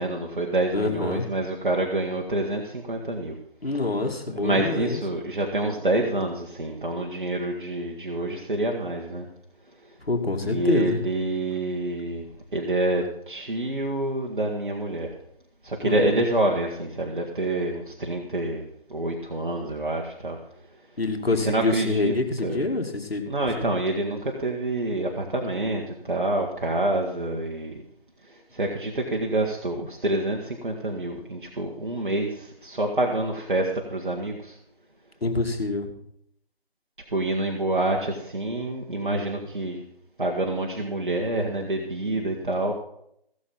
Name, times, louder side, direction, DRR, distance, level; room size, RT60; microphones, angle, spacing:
voice 1, 0.0-3.4 4.3-9.3 10.4-12.2 12.5-15.2 15.6-20.4 21.4-22.1 22.4-22.7 23.3-27.8 28.3-34.6 37.1-39.8 40.2-42.7, right 1 dB, 55° right, 0 dB, 1.7 m, -27 dB
voice 2, 0.7-1.3 3.6-5.0 10.1-11.0 15.8-16.2 21.0-23.3 23.6-23.7 35.2-35.9, left 3 dB, 80° left, 4 dB, 2.5 m, -26 dB
16.5 x 7.2 x 5.5 m, 0.73 s
figure-of-eight pair, 165°, 30 cm